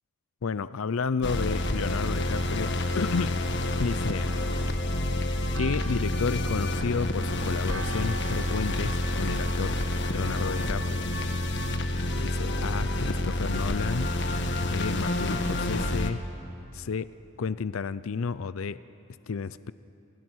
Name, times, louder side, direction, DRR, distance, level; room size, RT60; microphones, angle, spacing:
voice 1, 0.4-3.4 3.8-4.4 5.6-9.8 10.1-11.1 12.1-14.2 14.6-16.2 16.7-17.1 17.4-18.8 19.3-19.7, left 5 dB, 70° left, 16 dB, 0.5 m, -31 dB
sound 1, 1.2-16.1, left 1 dB, 55° left, 1.5 m, -28 dB
Church bell, 4.6-10.3, right 4 dB, 60° right, 2.0 m, -46 dB
28.5 x 28.0 x 6.2 m, 2.8 s
head